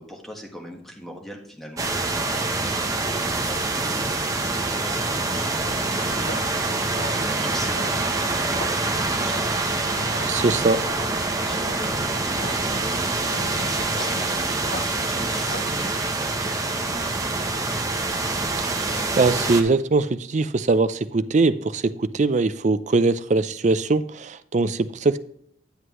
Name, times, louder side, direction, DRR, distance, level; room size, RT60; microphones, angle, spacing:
voice 1, 0.0-18.1, equal, ahead, 1.4 m, -41 dB
sound 1, 1.8-19.6, right 3 dB, 20° right, 0.9 m, -25 dB
sound 2, 5.7-15.9, left 2 dB, 60° left, 0.8 m, -40 dB
voice 2, 10.3-10.8 18.6-25.2, right 3 dB, 40° right, 0.4 m, -22 dB
9.3 x 8.0 x 3.1 m
head